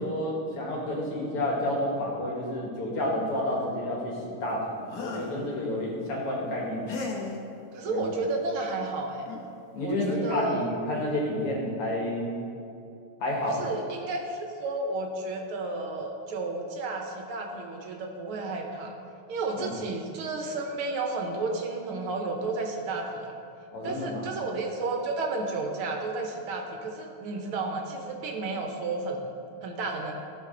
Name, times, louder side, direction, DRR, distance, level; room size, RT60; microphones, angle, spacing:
voice 1, 0.0-6.9 7.9-8.1 9.7-12.3 13.2-13.6 19.6-19.7 23.7-24.3, left 1 dB, 90° left, -2 dB, 2.6 m, -30 dB
sound 1, 4.9-5.4 6.9-7.4 8.8-8.9 9.3-9.5, left 3 dB, 50° left, 1.3 m, -36 dB
voice 2, 7.7-9.3 9.8-10.7 13.4-18.9 19.3-23.3 23.8-29.3 29.6-30.1, right 3 dB, 75° right, 2 dB, 1.8 m, -32 dB
15.5 x 5.1 x 3.8 m, 2.6 s
omnidirectional pair, 2.4 m